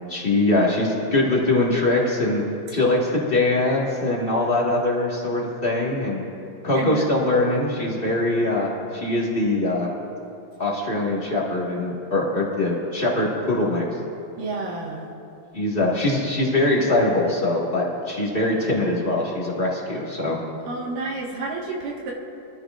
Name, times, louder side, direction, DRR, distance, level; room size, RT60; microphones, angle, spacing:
voice 1, 0.1-2.4 2.7-6.2 6.6-9.9 10.6-13.8 15.5-20.4, left 2 dB, 30° left, -5 dB, 0.9 m, -22 dB
voice 2, 14.4-15.1 20.7-22.1, right 3 dB, 70° right, -3 dB, 3.2 m, -30 dB
25.0 x 14.0 x 2.5 m, 2.7 s
omnidirectional pair, 4.0 m